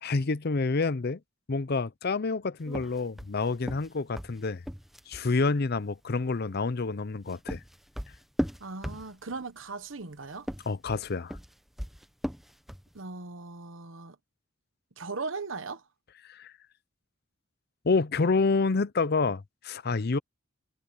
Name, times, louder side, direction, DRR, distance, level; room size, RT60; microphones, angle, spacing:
voice 1, 0.0-1.2 1.5-4.6 5.1-7.6 10.7-11.4 16.2-16.5 17.8-20.2, left 4 dB, 50° left, 0.6 m, -28 dB
Socks on wood footsteps, 2.7-5.3 7.0-9.4 10.3-12.9, equal, ahead, 1.0 m, -37 dB
voice 2, 8.6-10.5 12.9-14.2 15.0-15.8, right 4 dB, 75° right, 1.3 m, -38 dB
head